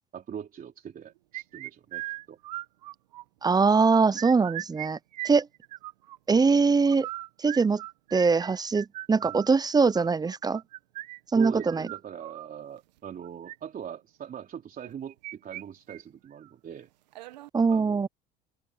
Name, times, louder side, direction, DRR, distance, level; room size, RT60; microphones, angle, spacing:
voice 1, 0.1-2.4 9.2-9.5 11.4-16.9 17.7-18.1, right 8 dB, 45° right, 3.4 m, -41 dB
sound 1, 1.3-3.2 3.6-4.9 5.1-6.2 6.8-12.5 13.2-13.5 14.8-15.6 15.9-16.0 16.4-16.5 17.1-17.5, right 17 dB, 85° right, 1.5 m, -39 dB
voice 2, 3.4-5.0 5.2-5.5 6.3-7.1 7.4-7.8 8.1-10.6 11.3-11.9 17.5-18.1, right 4 dB, 20° right, 0.7 m, -22 dB
hypercardioid pair, 75°, 21 cm